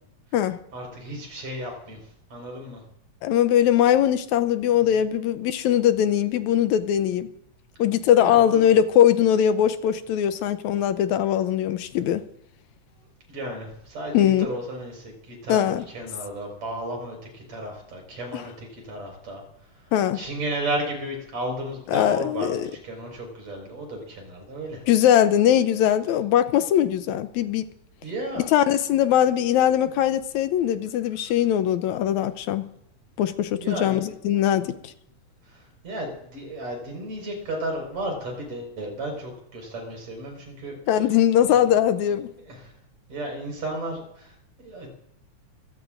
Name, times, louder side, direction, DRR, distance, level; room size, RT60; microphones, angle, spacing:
voice 1, 0.7-2.0 2.3-2.8 4.7-4.8 8.2-8.6 13.3-15.7 15.9-19.4 20.2-22.5 22.8-24.8 28.0-28.4 33.5-34.1 35.8-40.7 41.5-41.6 42.5-42.6 43.1-44.3 44.6-44.9, right 1 dB, 65° right, 6.4 m, -33 dB
voice 2, 3.2-7.3 7.8-12.2 14.1-14.5 15.5-15.8 18.3-18.4 19.9-20.2 21.9-22.7 24.9-27.7 28.3-32.7 33.2-34.8 40.9-42.3, left 10 dB, 80° left, 2.1 m, -21 dB
25.0 x 17.0 x 2.6 m
omnidirectional pair, 3.3 m